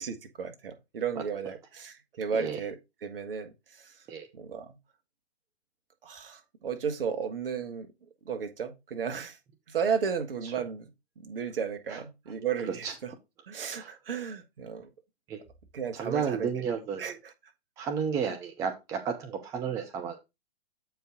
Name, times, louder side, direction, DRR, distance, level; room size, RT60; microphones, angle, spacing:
voice 1, 0.0-2.7 3.0-3.9 4.3-4.7 6.0-7.9 8.2-9.4 9.7-10.8 11.2-12.9 13.5-14.9 15.7-16.5 17.0-17.1, right 6 dB, 60° right, 1.5 m, -34 dB
voice 2, 1.2-1.5 2.3-2.6 4.1-4.3 10.4-10.6 11.9-12.0 12.6-12.9 13.7-13.9 15.3-15.4 15.9-17.2 17.8-20.2, right 7 dB, 10° right, 0.5 m, -33 dB
7.8 x 4.7 x 3.8 m
figure-of-eight pair, 125°, 32 cm